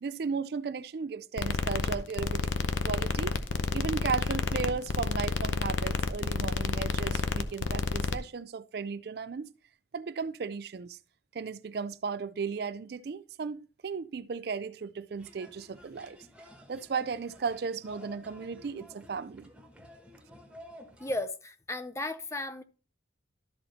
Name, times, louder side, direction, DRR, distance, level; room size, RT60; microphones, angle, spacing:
voice 1, 0.0-2.5 2.8-3.4 3.7-9.5 9.9-11.0 11.3-16.2 16.7-19.5, right 5 dB, 55° right, 0.4 m, -35 dB
sound 1, 1.4-8.2, left 3 dB, 90° left, 0.7 m, -30 dB
sound 2, 15.2-21.2, equal, 5° right, 1.2 m, -52 dB
voice 2, 21.0-22.6, left 2 dB, 15° left, 0.5 m, -35 dB
12.5 x 4.3 x 4.1 m
head